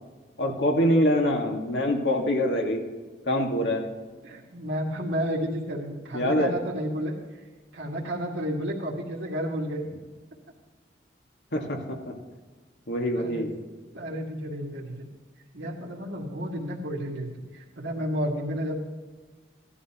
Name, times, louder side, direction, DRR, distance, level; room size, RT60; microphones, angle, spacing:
voice 1, 0.4-2.8 3.2-3.8 6.1-6.5 11.5-12.0 12.9-13.5, left 1 dB, 85° left, 1 dB, 2.0 m, -24 dB
voice 2, 4.2-7.2 7.7-9.9 13.1-13.5 13.9-15.1 15.5-18.9, equal, 90° right, -4 dB, 2.2 m, -31 dB
16.5 x 12.0 x 3.0 m, 1.3 s
head